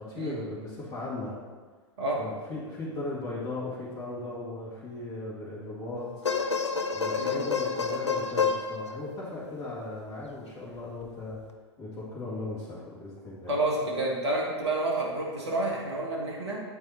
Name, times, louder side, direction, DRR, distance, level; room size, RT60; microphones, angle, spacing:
voice 1, 0.0-1.3 2.1-6.0 6.9-11.4 11.8-13.5, left 2 dB, 20° left, -9 dB, 2.0 m, -37 dB
sound 1, 6.0-9.5 11.0-11.1, left 5 dB, 80° left, 0.6 m, -29 dB
voice 2, 13.5-16.6, right 2 dB, 70° right, -2 dB, 1.9 m, -29 dB
8.0 x 4.7 x 4.3 m, 1.5 s
figure-of-eight pair, 95°, 15 cm